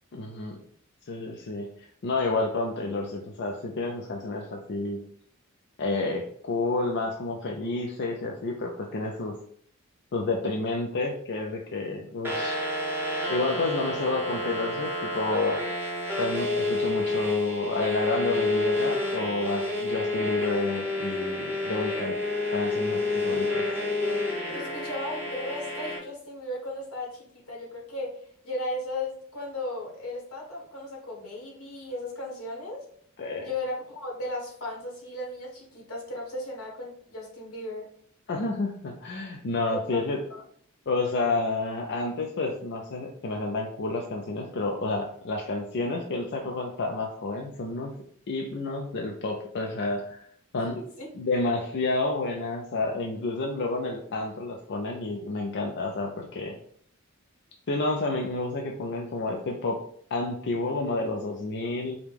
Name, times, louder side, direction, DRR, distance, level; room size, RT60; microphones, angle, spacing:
voice 1, 0.1-0.6 1.1-5.0 5.8-9.3 10.1-12.7 13.3-15.6 16.2-22.2 22.5-23.6 33.2-33.5 38.3-40.2 40.9-48.0 48.3-50.2 50.5-50.8 51.1-56.6 57.7-59.8 60.1-62.0, left 3 dB, 55° left, 1 dB, 0.5 m, -30 dB
sound 1, 12.2-26.0, left 2 dB, 10° right, 0.8 m, -29 dB
voice 2, 24.5-28.2 28.4-32.8 33.4-37.9 39.7-40.0 40.3-40.4 50.6-51.1, left 1 dB, 85° left, -2 dB, 1.5 m, -36 dB
4.9 x 2.2 x 3.3 m, 0.62 s
head